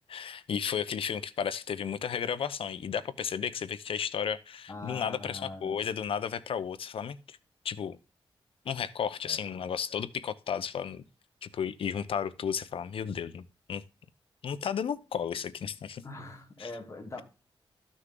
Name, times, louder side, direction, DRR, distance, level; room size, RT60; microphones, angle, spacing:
voice 1, 0.1-7.4 7.6-8.0 8.7-11.0 11.4-13.4 13.7-13.8 14.4-16.0 16.6-16.7, left 7 dB, 80° left, 0.7 m, -33 dB
voice 2, 4.7-5.9 9.3-9.4 16.0-17.2, left 2 dB, 35° left, 2.5 m, -42 dB
13.5 x 6.3 x 3.8 m
wide cardioid pair, 155°, 9 cm